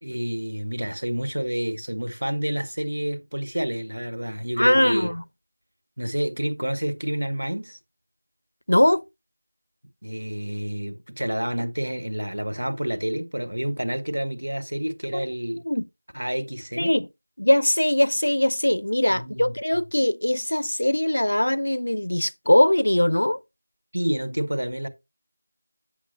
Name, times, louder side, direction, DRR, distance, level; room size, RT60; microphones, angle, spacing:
voice 1, 0.0-5.1 6.0-7.8 10.0-15.6 16.1-16.9 19.1-19.5 23.9-24.9, equal, 70° right, 1.7 m, -29 dB
voice 2, 4.6-5.2 8.7-9.0 15.1-15.3 15.6-15.9 16.8-17.1 17.4-23.4, left 1 dB, 65° left, 0.5 m, -21 dB
8.2 x 7.4 x 2.9 m
figure-of-eight pair, 180°, 0 cm